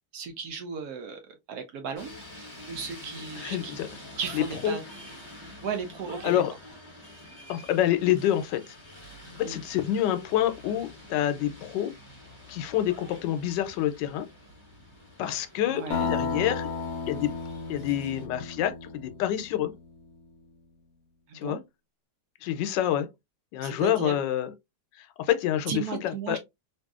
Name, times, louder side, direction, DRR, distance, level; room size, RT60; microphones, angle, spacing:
voice 1, 0.1-3.8 4.2-4.8 5.6-6.4 9.4-9.6 15.7-16.1 21.3-21.6 23.6-24.2 25.7-26.4, right 6 dB, 65° right, 1.0 m, -35 dB
sound 1, 2.0-18.3, left 1 dB, 20° left, 0.8 m, -47 dB
voice 2, 3.4-3.9 4.3-4.8 6.2-6.5 7.5-8.7 9.4-11.9 12.5-14.3 15.2-16.7 17.1-17.3 17.7-19.7 21.3-21.6 22.4-23.1 23.5-24.5 25.2-26.4, left 11 dB, 85° left, 1.2 m, -27 dB
sound 2, 15.9-19.7, left 5 dB, 65° left, 1.0 m, -33 dB
3.0 x 2.6 x 2.3 m
omnidirectional pair, 1.9 m